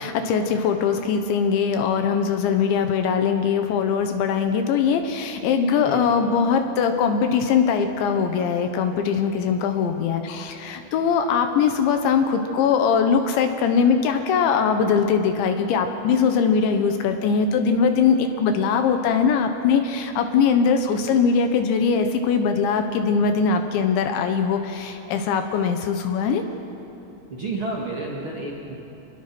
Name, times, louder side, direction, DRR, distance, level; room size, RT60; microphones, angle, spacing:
voice 1, 0.0-26.4, left 6 dB, 75° left, 6 dB, 3.2 m, -21 dB
voice 2, 27.3-28.7, right 2 dB, 40° right, -4 dB, 2.1 m, -30 dB
29.5 x 20.5 x 6.1 m, 3.0 s
omnidirectional pair, 5.7 m